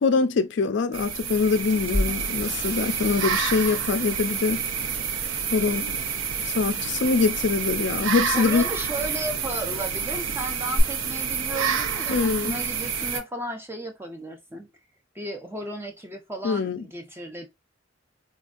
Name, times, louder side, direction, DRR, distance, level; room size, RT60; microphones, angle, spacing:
voice 1, 0.0-4.6 5.5-6.0 6.4-8.6 12.1-12.6 16.4-16.8, left 4 dB, 60° left, 0.4 m, -24 dB
sound 1, 0.9-13.2, right 7 dB, 80° right, 0.6 m, -28 dB
sound 2, 1.6-10.8, equal, 40° right, 1.3 m, -37 dB
voice 2, 8.3-14.7 15.1-17.5, right 1 dB, 10° right, 0.5 m, -34 dB
4.2 x 2.6 x 2.3 m
head